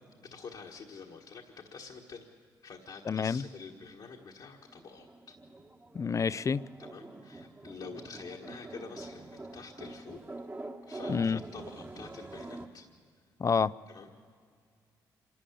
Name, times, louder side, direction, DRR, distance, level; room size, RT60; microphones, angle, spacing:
voice 1, 0.2-2.3 2.6-5.4 6.8-10.2 10.8-12.9 13.9-14.1, left 5 dB, 65° left, 0 dB, 1.5 m, -47 dB
voice 2, 3.1-3.5 5.9-6.6 11.1-11.4 13.4-13.7, left 5 dB, 40° left, 18 dB, 0.5 m, -28 dB
sound 1, 4.7-12.7, right 2 dB, 25° right, 1.4 m, -45 dB
26.5 x 12.5 x 8.6 m, 2.1 s
supercardioid pair, 60°, 8 cm